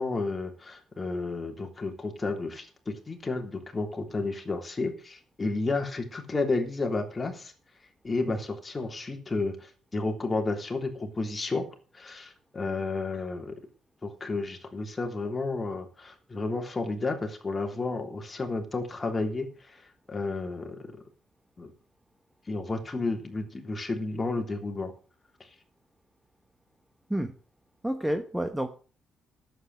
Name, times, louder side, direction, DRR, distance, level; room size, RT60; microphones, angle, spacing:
voice 1, 0.0-7.5 8.0-11.7 11.9-13.5 14.0-20.8 21.6-21.7 22.5-24.9, left 3 dB, 25° left, 3 dB, 3.4 m, -32 dB
voice 2, 27.8-28.7, right 1 dB, 5° right, 8 dB, 1.2 m, -29 dB
11.0 x 8.3 x 7.8 m, 0.39 s
cardioid pair, 90°, 0 cm